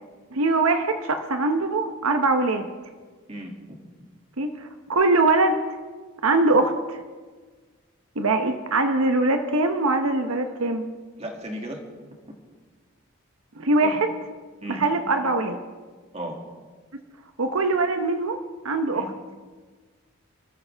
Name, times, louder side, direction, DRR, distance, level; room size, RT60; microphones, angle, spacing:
voice 1, 0.3-2.7 4.4-5.6 6.2-7.0 8.2-10.8 13.6-14.1 14.7-15.6 17.4-18.4 18.6-19.1, right 2 dB, 85° right, 6 dB, 1.0 m, -22 dB
voice 2, 3.3-3.8 11.2-11.8 13.8-14.0 14.6-14.8 16.1-16.4 18.9-19.1, right 1 dB, 30° right, 0 dB, 2.4 m, -35 dB
26.5 x 13.5 x 3.5 m, 1.4 s
head